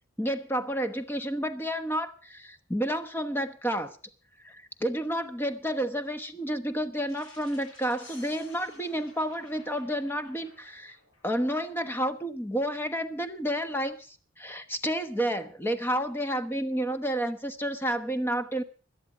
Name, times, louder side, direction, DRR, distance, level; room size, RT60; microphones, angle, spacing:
voice 1, 0.2-3.9 4.4-11.0 11.2-18.6, equal, 10° left, 9 dB, 1.1 m, -30 dB
sound 1, 7.1-11.8, left 2 dB, 90° left, 7.2 m, -55 dB
sound 2, 8.0-10.0, left 2 dB, 60° left, 3.8 m, -53 dB
17.0 x 12.0 x 5.0 m, 0.38 s
head